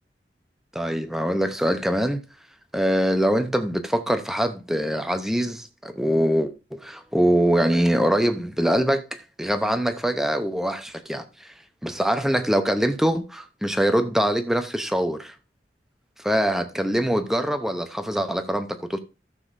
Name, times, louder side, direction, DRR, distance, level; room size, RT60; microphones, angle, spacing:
voice 1, 0.7-2.2 2.7-11.5 11.8-15.3 16.2-19.0, equal, ahead, 0.7 m, -23 dB
13.5 x 6.9 x 2.6 m
head